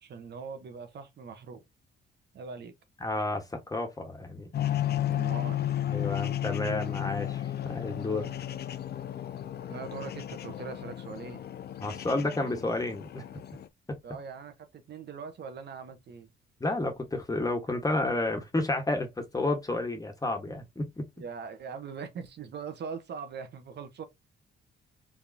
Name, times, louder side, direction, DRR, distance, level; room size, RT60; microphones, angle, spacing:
voice 1, 0.0-1.6 2.3-2.8 5.1-5.7 9.7-11.4 14.0-16.3 21.2-24.0, right 5 dB, 60° right, 1.2 m, -41 dB
voice 2, 3.0-4.5 5.9-8.3 11.8-13.2 16.6-21.0, left 2 dB, 15° left, 1.6 m, -31 dB
sound 1, 4.5-13.7, left 12 dB, 55° left, 0.6 m, -33 dB
4.7 x 3.6 x 2.9 m
cardioid pair, 90°, 20 cm